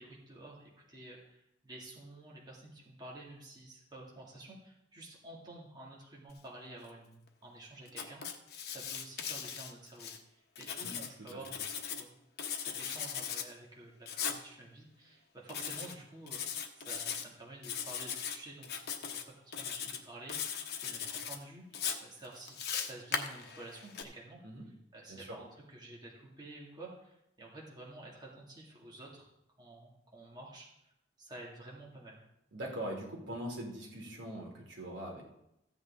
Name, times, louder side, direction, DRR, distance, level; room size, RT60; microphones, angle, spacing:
voice 1, 0.0-8.2 8.7-11.7 12.0-12.1 12.6-18.7 19.0-29.3 29.6-30.9 31.2-32.3, right 2 dB, 25° right, -4 dB, 2.1 m, -51 dB
Writing, 7.9-10.2 10.6-12.0 12.4-13.5 14.1-14.4 15.5-15.9 16.3-17.2 17.6-18.4 18.6-19.2 19.5-20.0 20.3-21.4 21.7-24.0, left 7 dB, 60° left, 1.0 m, -38 dB
voice 2, 32.5-35.2, right 1 dB, 80° right, -1 dB, 2.6 m, -41 dB
15.0 x 8.1 x 3.6 m, 0.82 s
head